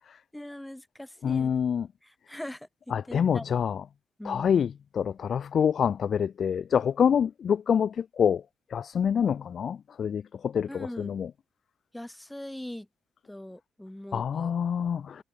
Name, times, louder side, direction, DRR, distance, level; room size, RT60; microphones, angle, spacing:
voice 1, 0.3-1.5 2.0-2.7 3.1-3.4 4.2-4.5 10.7-11.2 11.9-12.9 13.3-14.5, left 1 dB, 5° left, 1.5 m, -41 dB
voice 2, 1.2-1.9 2.9-3.8 4.2-8.4 8.7-11.3 14.1-15.2, left 7 dB, 50° left, 0.4 m, -26 dB
cardioid pair, 135°, 0 cm